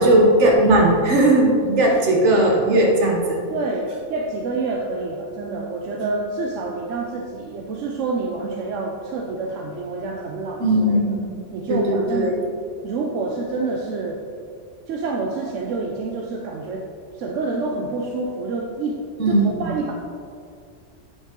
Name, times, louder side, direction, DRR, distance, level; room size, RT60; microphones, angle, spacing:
voice 1, 0.0-3.4 10.6-11.2 11.7-12.4 19.2-19.7, right 1 dB, 70° right, 0 dB, 1.5 m, -17 dB
voice 2, 3.5-11.0 11.5-12.4 12.8-14.2 14.9-16.9 17.1-19.9, right 3 dB, 85° right, 0 dB, 1.0 m, -28 dB
8.9 x 5.5 x 3.7 m, 2.3 s
omnidirectional pair, 1.3 m